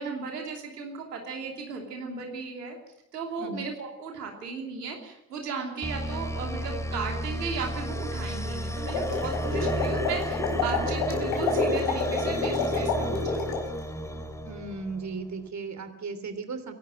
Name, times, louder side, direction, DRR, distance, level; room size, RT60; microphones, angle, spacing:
voice 1, 0.0-2.8 3.1-13.6, right 5 dB, 90° right, 2 dB, 3.1 m, -36 dB
sound 1, 5.8-15.2, equal, 5° left, 2.8 m, -33 dB
sound 2, 8.7-13.7, left 3 dB, 65° left, 5.1 m, -28 dB
voice 2, 14.4-16.7, right 4 dB, 35° right, 9 dB, 3.2 m, -36 dB
25.5 x 12.0 x 9.0 m, 0.85 s
hypercardioid pair, 55°, 47 cm